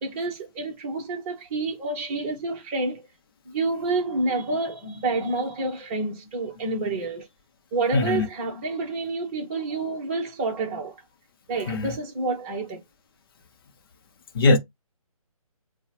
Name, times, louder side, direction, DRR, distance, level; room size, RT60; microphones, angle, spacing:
voice 1, 0.0-3.0 3.4-7.3 7.7-10.9 11.5-12.8, right 3 dB, 20° right, 1.2 m, -28 dB
voice 2, 7.9-8.3 11.7-11.9 14.3-14.6, left 3 dB, 40° left, 0.9 m, -20 dB
7.0 x 2.4 x 3.0 m
figure-of-eight pair, 140°, 19 cm